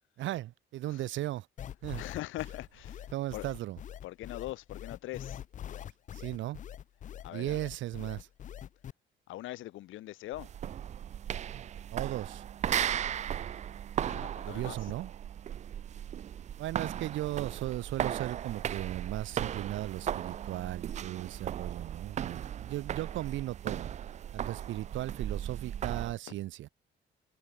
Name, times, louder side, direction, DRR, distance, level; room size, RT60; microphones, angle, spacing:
voice 1, 0.2-1.5 1.8-2.0 3.1-3.8 6.1-6.6 7.3-8.3 11.5-11.7 11.9-12.4 14.4-15.1 16.6-23.9 24.3-26.7, right 15 dB, 75° right, 0.8 m, -36 dB
sound 1, 1.6-8.9, left 10 dB, 40° left, 0.5 m, -43 dB
voice 2, 1.9-3.5 4.0-5.4 7.2-7.6 9.3-10.5 14.0-14.9, left 15 dB, 85° left, 0.7 m, -42 dB
sound 2, 10.3-26.2, right 10 dB, 35° right, 0.4 m, -36 dB
cardioid pair, 170°, 20 cm